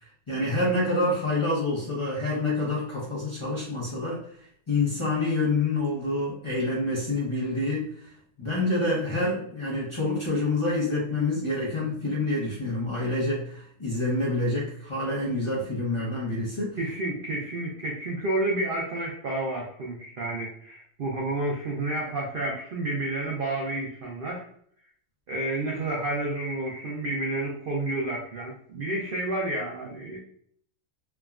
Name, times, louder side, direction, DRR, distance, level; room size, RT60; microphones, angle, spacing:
voice 1, 0.3-4.2 4.7-8.1 8.4-16.8, left 2 dB, 35° left, -8 dB, 0.5 m, -27 dB
voice 2, 16.8-24.4 25.3-30.2, right 2 dB, 80° right, -1 dB, 0.4 m, -30 dB
3.4 x 2.1 x 2.3 m, 0.64 s
omnidirectional pair, 1.6 m